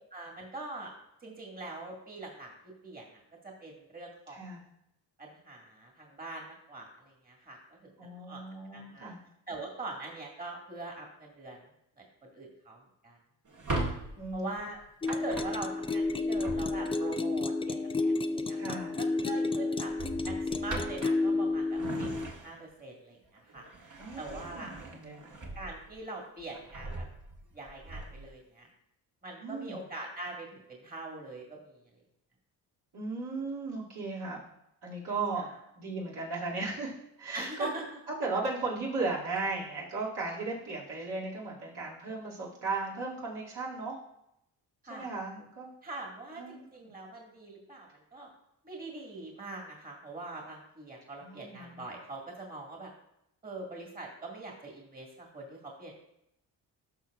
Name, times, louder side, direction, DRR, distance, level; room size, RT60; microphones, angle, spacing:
voice 1, 0.1-0.9 1.2-2.5 2.8-3.1 3.4-4.4 5.2-8.4 8.7-9.1 9.5-11.6 12.0-13.2 14.3-14.8 15.1-19.9 20.2-22.1 22.4-23.7 24.2-24.7 25.6-27.1 27.5-28.7 29.2-32.0 35.4-35.6 37.3-37.8 44.8-45.1 45.8-48.3 48.6-52.9 53.4-55.9, right 2 dB, 20° right, -1 dB, 2.0 m, -43 dB
voice 2, 4.3-4.6 8.0-9.2 14.1-14.4 18.6-18.9 24.0-25.4 29.4-29.8 32.9-34.4 34.8-35.5 35.8-37.7 38.1-44.0 44.9-45.7 46.4-46.9 51.2-51.8, right 3 dB, 60° right, -5 dB, 2.5 m, -36 dB
Drawer open or close, 13.4-17.1 18.6-18.9 19.2-19.4 19.9-22.8 23.2-26.0 26.4-28.3, right 2 dB, 40° right, 1.8 m, -40 dB
sound 1, 15.0-22.3, left 3 dB, 15° left, 0.4 m, -31 dB
12.0 x 5.5 x 2.4 m, 0.81 s
supercardioid pair, 60°, 45 cm